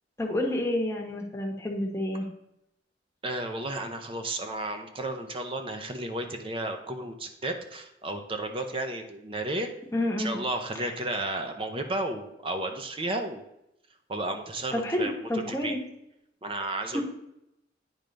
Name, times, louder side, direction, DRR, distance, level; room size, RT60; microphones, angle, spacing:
voice 1, 0.2-2.3 9.9-10.4 10.8-10.9 14.7-15.8 16.9-17.0, left 1 dB, 15° left, 0 dB, 1.0 m, -29 dB
voice 2, 3.2-9.7 10.2-13.4 14.1-15.8 16.4-17.0, right 2 dB, 30° right, 5 dB, 0.6 m, -33 dB
9.0 x 3.4 x 5.2 m, 0.82 s
head